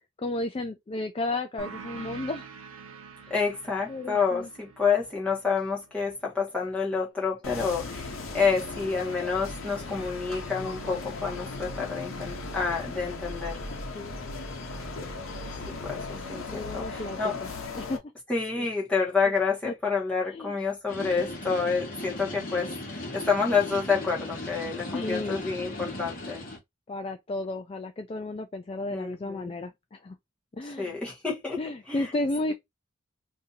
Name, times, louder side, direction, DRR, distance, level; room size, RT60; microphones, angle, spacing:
voice 1, 0.2-2.4 3.2-3.3 3.9-4.5 13.9-14.1 16.5-17.5 17.8-18.0 18.6-18.7 19.6-19.7 20.3-20.6 24.9-25.4 26.9-30.1 30.5-31.0 31.6-32.5, left 2 dB, 30° left, 0.3 m, -33 dB
sound 1, 1.6-6.8, right 5 dB, 85° right, 0.7 m, -46 dB
voice 2, 3.3-13.6 15.8-17.4 18.3-26.4 28.9-29.5 30.6-31.6 31.9-32.1, left 5 dB, 5° left, 1.2 m, -28 dB
sound 2, 7.4-18.0, left 3 dB, 80° left, 0.8 m, -37 dB
sound 3, 20.9-26.6, left 1 dB, 45° left, 1.2 m, -37 dB
2.7 x 2.6 x 3.8 m
head